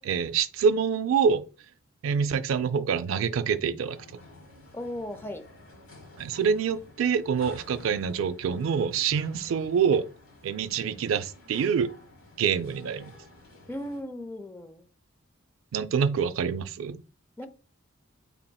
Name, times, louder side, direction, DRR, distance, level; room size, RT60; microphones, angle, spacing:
voice 1, 0.0-1.4 2.0-4.0 6.2-10.0 10.4-11.9 12.4-13.1 15.7-17.0, right 6 dB, 70° right, 0.3 m, -26 dB
sound 1, 3.8-14.0, left 2 dB, 70° left, 1.5 m, -51 dB
voice 2, 4.7-5.5 13.7-14.9 17.4-17.5, left 1 dB, 10° left, 0.4 m, -36 dB
4.2 x 3.4 x 2.2 m
head